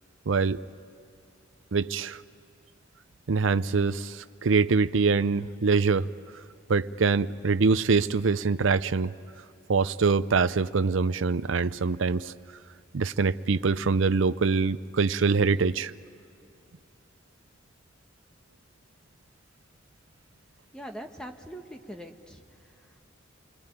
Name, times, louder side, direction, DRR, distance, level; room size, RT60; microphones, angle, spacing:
voice 1, 0.3-0.6 1.7-2.2 3.3-6.1 6.7-9.1 9.7-12.3 12.9-15.9, right 4 dB, 75° right, 14 dB, 0.6 m, -24 dB
voice 2, 20.7-22.4, equal, 5° left, 4 dB, 1.2 m, -41 dB
28.5 x 21.5 x 9.2 m, 2.6 s
head